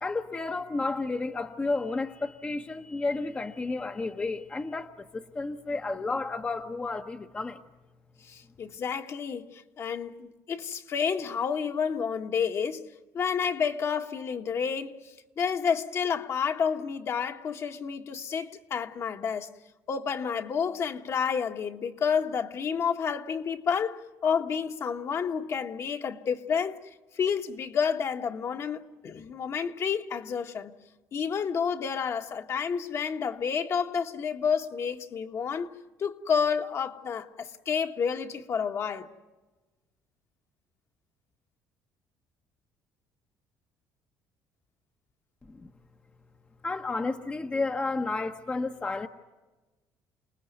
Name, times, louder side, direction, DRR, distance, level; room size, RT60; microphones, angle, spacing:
voice 1, 0.0-7.6 45.5-45.7 46.6-49.1, left 3 dB, 20° left, 0.9 m, -32 dB
voice 2, 8.2-12.9 13.1-19.5 19.9-26.9 27.1-30.7 31.1-35.7 36.0-39.1, left 6 dB, 45° left, 1.4 m, -30 dB
29.0 x 19.5 x 9.3 m
cardioid pair, 115°, 6 cm